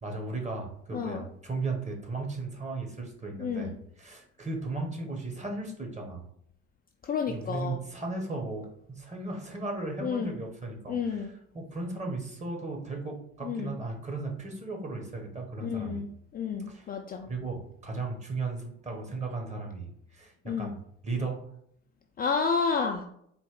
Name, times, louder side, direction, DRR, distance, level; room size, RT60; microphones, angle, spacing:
voice 1, 0.0-6.2 7.3-16.0 16.7-16.9 17.3-20.8 21.0-21.4, right 3 dB, 20° right, 1 dB, 1.5 m, -36 dB
voice 2, 0.9-1.2 3.4-3.8 7.0-7.8 10.0-10.3 10.9-11.3 13.4-13.8 15.6-16.1 16.3-17.3 20.5-20.8 22.2-23.0, left 5 dB, 25° left, 3 dB, 0.5 m, -30 dB
4.2 x 2.6 x 3.8 m, 0.70 s
hypercardioid pair, 65°, 35 cm